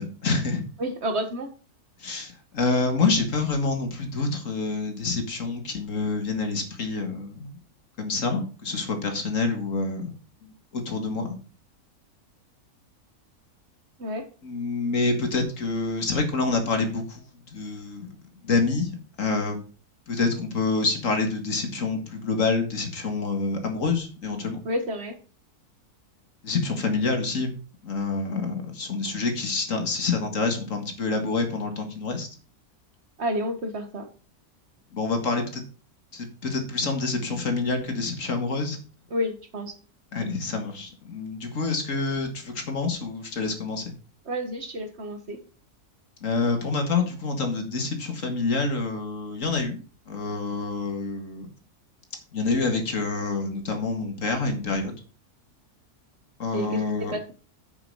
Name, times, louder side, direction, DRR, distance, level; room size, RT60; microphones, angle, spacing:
voice 1, 0.0-0.7 2.0-7.6 8.0-10.1 10.4-11.3 14.4-18.2 18.4-19.6 20.1-24.6 26.4-27.5 27.8-32.3 34.9-35.6 36.1-38.8 40.1-43.9 46.2-51.5 52.3-55.0 56.4-57.2, left 3 dB, 55° left, 5 dB, 2.2 m, -27 dB
voice 2, 0.8-1.5 14.0-14.2 24.7-25.1 33.2-34.1 39.1-39.7 44.3-45.4 56.5-56.8 57.1-57.3, equal, 45° right, 7 dB, 1.9 m, -30 dB
8.0 x 7.1 x 5.4 m, 0.36 s
omnidirectional pair, 1.6 m